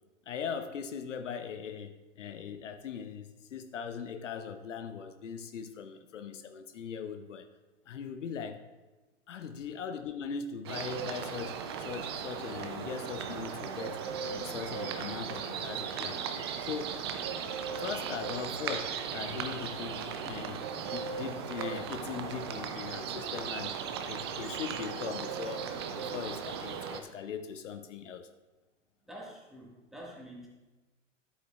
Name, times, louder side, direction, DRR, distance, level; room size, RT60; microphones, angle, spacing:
voice 1, 0.3-7.5 7.9-8.7 9.3-16.2 16.6-17.1 17.8-23.8 24.1-28.3, left 7 dB, 70° left, 9 dB, 0.7 m, -40 dB
sound 1, 10.6-27.0, right 7 dB, 25° right, 0.3 m, -37 dB
voice 2, 29.1-30.5, right 1 dB, ahead, -5 dB, 1.7 m, -47 dB
10.5 x 8.3 x 2.4 m, 1.2 s
hypercardioid pair, 115°, 39 cm